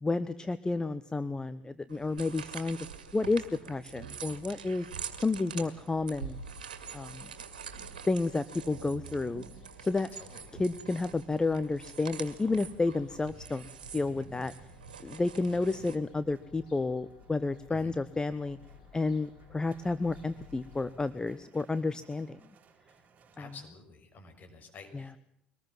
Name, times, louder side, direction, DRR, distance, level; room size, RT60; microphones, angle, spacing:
voice 1, 0.0-2.9 3.1-4.9 5.2-6.4 6.9-7.3 8.1-9.4 9.8-10.1 10.5-13.6 13.9-14.5 15.0-18.6 18.9-22.4 23.4-23.5 24.9-25.1, left 3 dB, 15° left, 14 dB, 1.0 m, -31 dB
sound 1, 1.9-15.9, right 7 dB, 75° right, 2.2 m, -45 dB
Fowl, 5.9-21.1, left 7 dB, 70° left, 4.4 m, -57 dB
voice 2, 10.1-10.4 17.7-17.9 23.4-25.2, left 3 dB, 40° left, 5 dB, 6.5 m, -50 dB
sound 2, 11.3-23.5, right 3 dB, 35° right, 5.1 m, -59 dB
24.0 x 20.0 x 7.5 m, 0.78 s
figure-of-eight pair, 60°, 5 cm